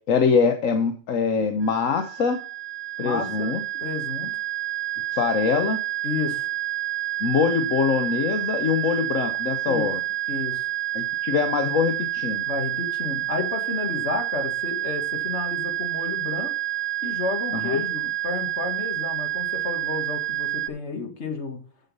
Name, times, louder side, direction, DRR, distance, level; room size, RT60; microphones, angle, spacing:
voice 1, 0.1-2.4 3.0-3.6 5.1-5.8 7.2-10.0 10.9-12.4 17.5-17.8, left 6 dB, 75° left, 6 dB, 1.3 m, -23 dB
sound 1, 1.6-20.7, right 14 dB, 70° right, 1.1 m, -29 dB
voice 2, 3.0-4.3 6.0-6.5 9.7-9.9 10.3-10.6 12.5-16.5 17.0-21.6, left 4 dB, 55° left, 5 dB, 1.9 m, -31 dB
8.0 x 6.8 x 5.3 m, 0.43 s
omnidirectional pair, 1.4 m